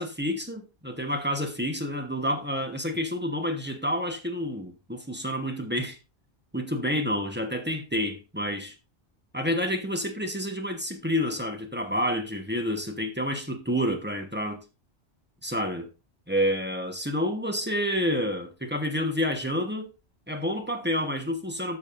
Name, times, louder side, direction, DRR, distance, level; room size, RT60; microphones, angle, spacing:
voice 1, 0.0-6.0 6.5-8.7 9.3-14.6 15.4-15.9 16.3-19.9 20.3-21.8, equal, 10° right, 1.0 m, -29 dB
12.5 x 6.3 x 2.5 m
omnidirectional pair, 1.2 m